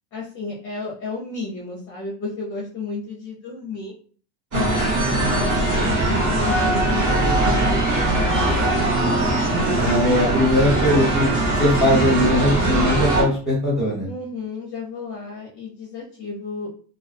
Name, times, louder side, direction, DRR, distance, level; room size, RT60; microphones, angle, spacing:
voice 1, 0.1-3.9 4.5-9.6 14.1-16.7, left 4 dB, 30° left, -5 dB, 0.5 m, -33 dB
voice 2, 4.5-5.0 9.8-11.3 11.6-14.1, left 1 dB, ahead, -6 dB, 1.1 m, -20 dB
sound 1, 4.5-13.2, right 2 dB, 35° right, 1.0 m, -20 dB
2.3 x 2.1 x 2.5 m, 0.43 s
cardioid pair, 180°, 39 cm